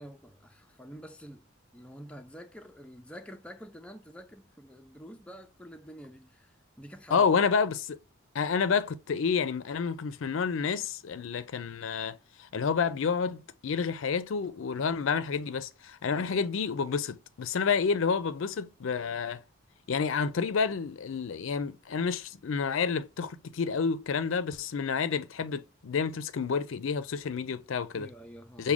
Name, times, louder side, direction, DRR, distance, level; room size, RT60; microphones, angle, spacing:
voice 1, 0.0-1.4 1.7-7.3 14.7-14.9 16.1-16.5 27.9-28.7, equal, 5° left, 0.4 m, -48 dB
voice 2, 7.1-8.0 8.3-19.4 19.9-28.1 28.6-28.7, left 5 dB, 70° left, 0.4 m, -29 dB
6.1 x 2.2 x 3.5 m
head